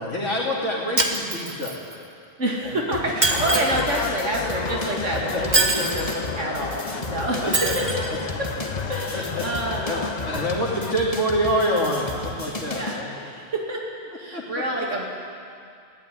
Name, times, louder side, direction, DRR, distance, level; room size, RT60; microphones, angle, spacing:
voice 1, 0.0-1.8 2.6-2.7 5.3-5.4 7.4-7.7 9.1-9.4 9.9-13.1 14.3-14.4, equal, 80° left, -5 dB, 3.1 m, -26 dB
Shatter, 1.0-2.0 3.2-3.9 5.5-6.2 7.5-8.1, right 2 dB, 35° right, 1.9 m, -23 dB
voice 2, 2.4-8.0 8.9-10.3 12.7-13.0 13.7-13.8 14.2-15.1, right 1 dB, 80° right, -2 dB, 2.8 m, -28 dB
sound 1, 2.9-13.0, left 2 dB, 30° left, 2.0 m, -35 dB
sound 2, 3.3-10.9, left 6 dB, 45° left, 0.6 m, -31 dB
21.5 x 16.0 x 9.8 m, 2.4 s
omnidirectional pair, 1.3 m